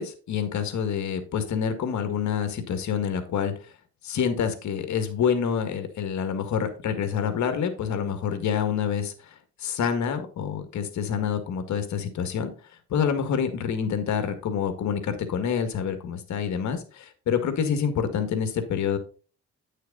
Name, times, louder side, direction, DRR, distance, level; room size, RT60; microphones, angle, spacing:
voice 1, 0.0-3.5 4.0-12.5 12.9-19.0, left 7 dB, 70° left, 8 dB, 1.9 m, -27 dB
9.6 x 6.5 x 4.0 m, 0.38 s
cardioid pair, 90°, 30 cm